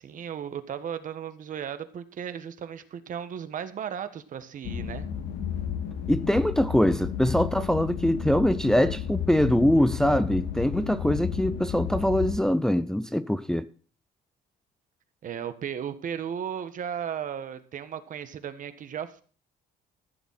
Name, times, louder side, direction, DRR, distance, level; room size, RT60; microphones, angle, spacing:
voice 1, 0.0-5.1 15.2-19.2, right 8 dB, 50° right, 1.5 m, -35 dB
sound 1, 4.6-12.4, left 8 dB, 80° left, 2.1 m, -32 dB
voice 2, 6.1-13.7, left 1 dB, 5° left, 0.6 m, -23 dB
14.5 x 7.3 x 5.8 m
cardioid pair, 110°, 17 cm